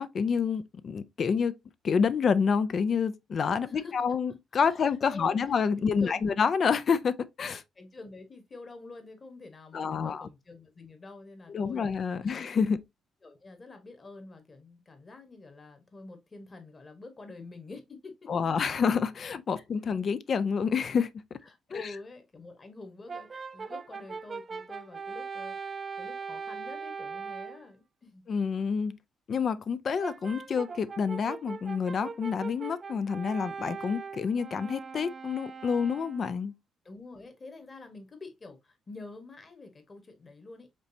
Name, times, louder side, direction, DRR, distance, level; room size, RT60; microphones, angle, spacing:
voice 1, 0.0-1.5 1.8-7.6 9.7-10.3 11.5-12.8 18.3-21.4 21.7-21.9 28.3-29.0 29.3-36.5, left 6 dB, 50° left, 0.5 m, -28 dB
voice 2, 3.6-3.9 4.7-5.4 6.0-6.3 7.7-11.8 12.2-12.8 13.2-18.3 19.5-19.6 21.4-28.2 36.8-40.7, left 3 dB, 30° left, 1.4 m, -47 dB
Brass instrument, 23.1-27.6 30.0-36.3, right 5 dB, 35° right, 0.5 m, -40 dB
5.2 x 3.2 x 2.7 m
cardioid pair, 90°, 0 cm